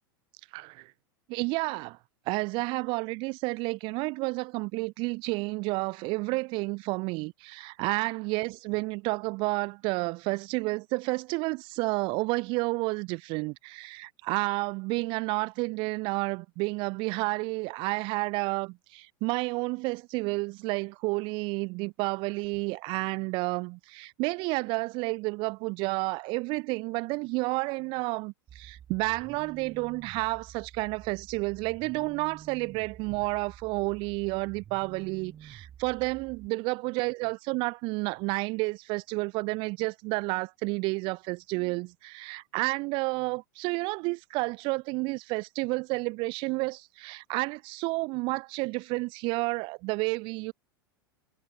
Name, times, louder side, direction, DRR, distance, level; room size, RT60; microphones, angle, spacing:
voice 1, 0.5-0.9 1.3-2.0 2.3-50.5, right 26 dB, 45° right, 0.7 m, -31 dB
sound 1, 28.5-36.5, right 10 dB, 25° right, 1.2 m, -50 dB
figure-of-eight pair, 90°, 12 cm